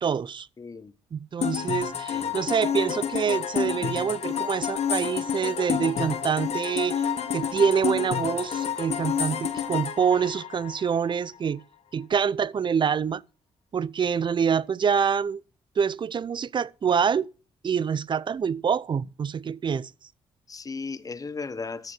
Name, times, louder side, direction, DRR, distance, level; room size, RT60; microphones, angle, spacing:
voice 1, 0.0-0.5 1.1-7.1 7.3-11.6 11.9-13.2 13.7-15.4 15.8-17.3 17.6-19.9, right 7 dB, 40° right, 0.5 m, -26 dB
voice 2, 0.6-0.9 2.1-2.4 20.5-21.9, left 4 dB, 30° left, 1.1 m, -36 dB
sound 1, 1.4-11.1, left 8 dB, 60° left, 1.7 m, -29 dB
13.5 x 6.5 x 6.6 m
cardioid pair, 85°, 12 cm